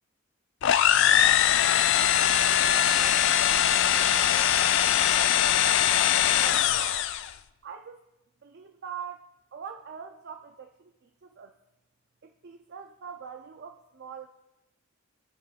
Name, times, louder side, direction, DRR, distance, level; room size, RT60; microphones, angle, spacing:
sound 1, 0.6-7.3, left 10 dB, 60° left, 0.3 m, -22 dB
voice 1, 2.3-7.1 7.6-8.0 8.4-11.5 12.2-14.3, right 6 dB, 50° right, 5 dB, 0.4 m, -44 dB
16.0 x 5.6 x 2.4 m, 0.93 s
head